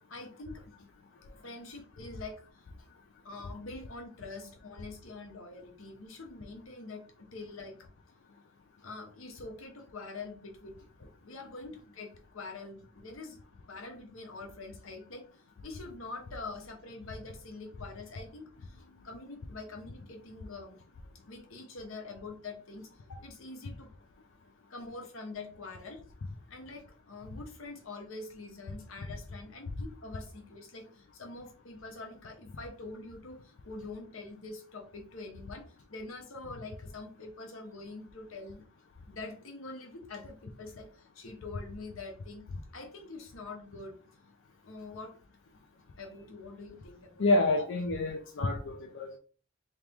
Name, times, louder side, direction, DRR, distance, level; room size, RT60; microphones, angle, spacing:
voice 1, 0.1-0.6 1.4-2.4 3.2-7.9 8.8-13.4 13.7-15.3 15.6-20.8 21.3-23.9 24.7-26.0 26.5-38.6 39.1-42.4 42.7-44.0 44.6-45.2 46.0-47.7, left 3 dB, 80° left, 1.0 m, -45 dB
voice 2, 47.2-49.2, left 2 dB, 60° left, 0.4 m, -28 dB
3.1 x 2.9 x 3.5 m
head